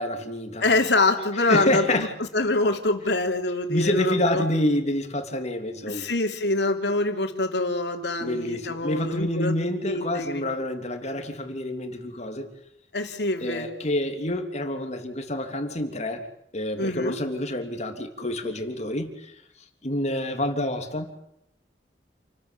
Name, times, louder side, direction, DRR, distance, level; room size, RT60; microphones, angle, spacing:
voice 1, 0.0-0.6 1.4-2.1 3.7-6.1 8.2-12.5 13.4-16.3 16.5-19.3 19.8-21.1, left 1 dB, 40° left, 6 dB, 3.2 m, -28 dB
voice 2, 0.6-2.1 2.3-4.4 5.9-9.5 9.9-10.4 12.9-13.7 16.8-17.2, left 2 dB, 70° left, 5 dB, 3.6 m, -25 dB
29.0 x 13.5 x 9.5 m, 0.78 s
head